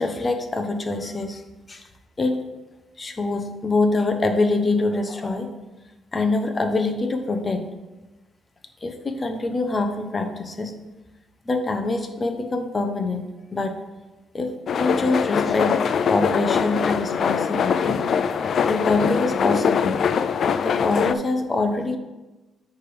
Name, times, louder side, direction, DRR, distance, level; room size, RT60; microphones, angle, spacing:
voice 1, 0.0-1.4 1.7-1.8 2.2-2.4 3.0-5.5 6.1-7.7 8.8-10.7 11.5-13.7 14.3-15.8 16.1-18.0 18.6-20.0 20.6-22.0, left 3 dB, 30° left, 6 dB, 0.9 m, -24 dB
sound 1, 14.7-21.1, left 7 dB, 55° left, 0.3 m, -22 dB
9.2 x 3.5 x 5.3 m, 1.1 s
cardioid pair, 90°, 0 cm